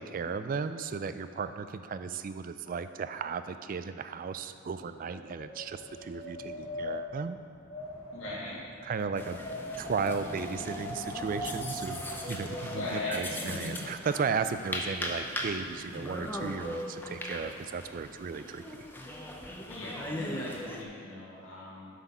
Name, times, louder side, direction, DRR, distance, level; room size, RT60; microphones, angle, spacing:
voice 1, 0.0-7.4 8.8-9.4 9.8-12.0 12.3-18.9, right 5 dB, 45° right, 11 dB, 0.3 m, -35 dB
Wind, 4.6-13.8, left 1 dB, 30° left, 1.3 m, -40 dB
voice 2, 8.1-8.6 12.7-13.8 19.7-21.9, left 1 dB, 80° left, -7 dB, 2.4 m, -39 dB
sound 1, 9.2-20.8, left 1 dB, 10° left, 0.7 m, -39 dB
8.0 x 6.1 x 5.4 m, 2.2 s
head